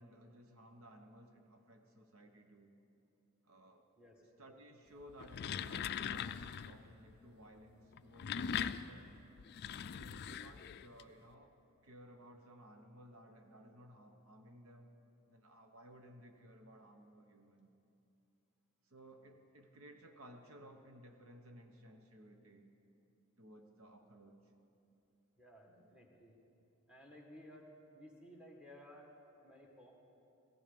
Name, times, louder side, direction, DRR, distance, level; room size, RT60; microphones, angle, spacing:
voice 1, 0.0-2.7 3.4-3.9 4.4-9.2 9.8-11.5 11.8-14.9 15.3-17.7 18.8-22.7 23.4-24.4, equal, 70° right, 4 dB, 1.0 m, -58 dB
sound 1, 5.1-6.8 7.9-11.0, left 8 dB, 50° left, 0.3 m, -41 dB
voice 2, 25.4-26.4 26.9-29.2 29.4-29.9, equal, 5° right, 0 dB, 1.8 m, -57 dB
17.5 x 15.5 x 5.2 m, 2.8 s
head